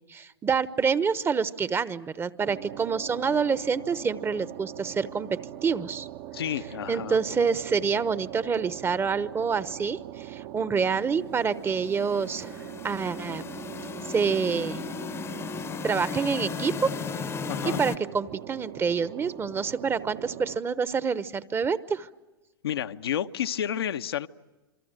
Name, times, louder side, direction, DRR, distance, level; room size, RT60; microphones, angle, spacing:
voice 1, 0.1-6.1 6.9-13.4 14.0-14.8 15.8-17.0 17.6-22.1, right 5 dB, 20° right, 16 dB, 1.0 m, -27 dB
sound 1, 2.4-20.6, right 13 dB, 55° right, 1.2 m, -42 dB
voice 2, 6.3-7.2 17.5-17.8 22.6-24.3, left 10 dB, 80° left, 8 dB, 1.0 m, -30 dB
sound 2, 11.5-18.0, left 6 dB, 20° left, 0.9 m, -36 dB
27.0 x 24.5 x 9.0 m, 1.1 s
hypercardioid pair, 110°, 13 cm